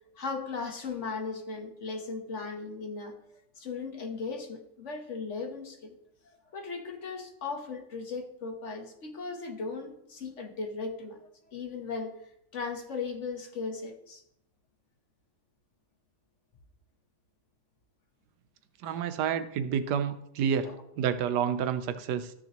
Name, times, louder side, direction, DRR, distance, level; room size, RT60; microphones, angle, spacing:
voice 1, 0.1-3.2 3.6-6.0 6.2-12.2 12.5-14.2 18.8-19.0 20.6-20.8, left 4 dB, 50° left, 4 dB, 1.3 m, -37 dB
voice 2, 18.8-22.3, right 8 dB, 85° right, 11 dB, 1.3 m, -29 dB
13.0 x 6.4 x 2.9 m, 0.76 s
omnidirectional pair, 1.8 m